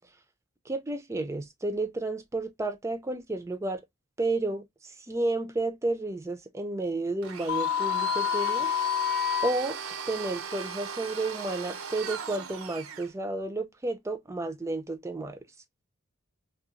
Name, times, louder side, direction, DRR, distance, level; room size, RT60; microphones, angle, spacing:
voice 1, 0.7-3.8 4.2-8.7 9.4-9.8 10.1-15.4, right 2 dB, 15° right, 0.3 m, -31 dB
Domestic sounds home sounds, 7.2-13.1, right 6 dB, 80° right, 0.5 m, -38 dB
sound 1, 7.5-9.5, left 11 dB, 65° left, 0.5 m, -27 dB
2.8 x 2.2 x 2.4 m
head